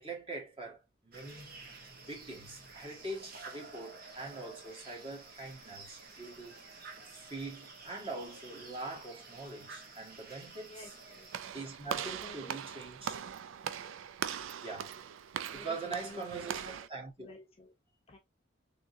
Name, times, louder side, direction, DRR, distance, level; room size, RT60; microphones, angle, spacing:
voice 1, 0.0-1.6 2.1-6.6 7.1-10.9 11.5-13.2 14.6-14.9 15.5-17.3, right 3 dB, 30° right, 1.4 m, -43 dB
sound 1, 1.1-11.4, right 3 dB, 50° right, 1.0 m, -51 dB
voice 2, 10.7-11.3 12.2-12.6 15.5-16.5 17.2-17.7 18.1-18.2, left 1 dB, 30° left, 0.7 m, -51 dB
Walk footsteps / Slam, 11.3-16.9, right 8 dB, 85° right, 0.3 m, -40 dB
3.6 x 2.8 x 2.6 m
head